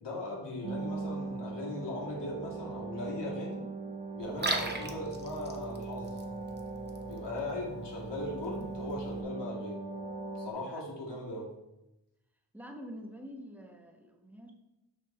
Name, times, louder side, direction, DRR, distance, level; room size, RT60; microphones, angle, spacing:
voice 1, 0.0-3.6 4.1-6.2 7.0-9.8 10.3-11.5, left 1 dB, 85° left, -3 dB, 2.1 m, -39 dB
sound 1, 0.6-10.5, right 3 dB, 50° right, 1.2 m, -40 dB
Liquid, 4.2-9.2, right 2 dB, 25° right, 0.8 m, -40 dB
voice 2, 10.6-11.0 12.5-14.5, equal, 5° right, 2 dB, 1.1 m, -47 dB
6.4 x 5.3 x 4.3 m, 0.94 s
wide cardioid pair, 105°, 41 cm